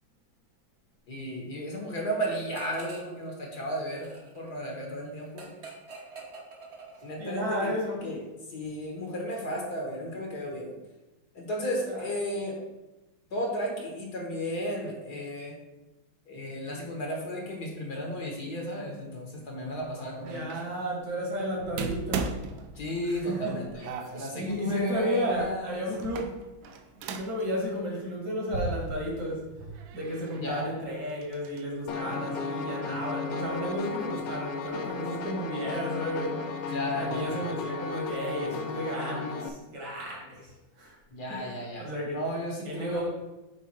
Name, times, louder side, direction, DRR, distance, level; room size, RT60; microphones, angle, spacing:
voice 1, 1.1-5.5 7.0-7.7 8.0-10.8 11.3-12.6 13.3-15.6 16.3-20.6 22.8-25.8 30.3-30.9 36.7-37.5 41.1-43.1, equal, 55° left, 0 dB, 1.6 m, -34 dB
sound 1, 2.5-3.2 3.5-7.4, right 3 dB, 40° right, 1.0 m, -46 dB
voice 2, 7.2-8.1 11.8-12.0 20.3-22.4 23.0-23.6 24.4-26.4 26.6-26.8 27.1-36.6 36.9-40.5 40.8-40.9 41.3-41.5 41.8-42.2 42.6-43.1, equal, 60° right, -3 dB, 2.6 m, -33 dB
sound 2, 20.2-20.7 21.8-23.2 23.8-24.7 25.9-27.5 27.8-27.9 29.1-29.2 29.7-30.8 31.1-31.6, right 5 dB, 80° right, 1.4 m, -38 dB
Piano, 31.9-39.5, left 4 dB, 85° left, 0.7 m, -35 dB
8.4 x 3.5 x 4.5 m, 1.1 s
omnidirectional pair, 2.2 m